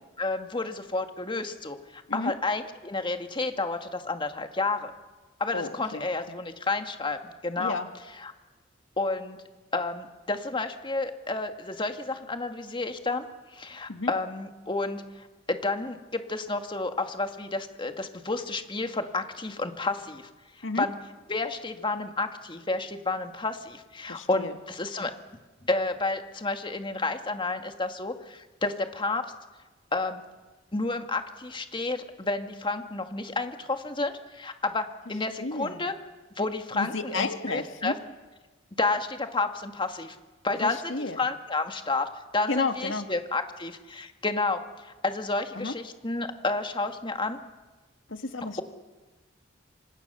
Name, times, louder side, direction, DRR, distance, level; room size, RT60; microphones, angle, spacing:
voice 1, 0.2-4.9 5.4-7.8 8.2-8.3 9.0-9.4 9.7-13.3 13.5-15.0 15.5-20.3 20.6-21.0 21.3-25.1 25.7-29.2 29.9-30.2 30.7-35.9 36.4-37.9 38.8-40.2 40.4-47.4, left 3 dB, 25° left, 6 dB, 2.0 m, -30 dB
voice 2, 5.5-6.0 7.6-7.9 13.9-14.1 20.6-20.9 24.1-24.5 35.4-35.8 36.7-38.0 40.6-41.2 42.5-43.1 45.6-45.7 48.1-48.6, left 3 dB, 85° left, 7 dB, 1.7 m, -32 dB
27.0 x 26.5 x 6.9 m, 1.2 s
head